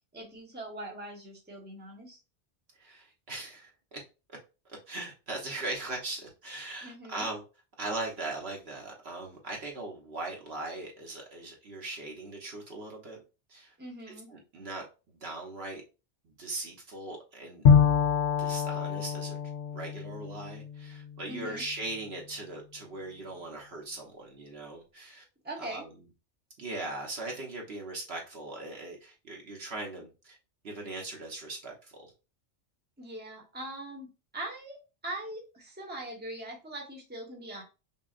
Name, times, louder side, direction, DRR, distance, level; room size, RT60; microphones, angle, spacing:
voice 1, 0.1-2.2 6.8-7.3 13.8-14.3 21.3-21.6 25.4-25.9 33.0-37.6, right 1 dB, 10° right, 1.0 m, -41 dB
voice 2, 2.8-4.0 4.9-7.4 7.8-13.2 13.5-13.7 14.3-15.8 16.2-17.8 18.4-19.4 19.7-25.2 25.6-25.9 26.6-30.4 30.6-32.1, right 2 dB, 65° right, 1.2 m, -39 dB
Bowed string instrument, 17.6-21.4, left 7 dB, 85° left, 1.0 m, -26 dB
5.5 x 2.3 x 2.5 m
omnidirectional pair, 1.2 m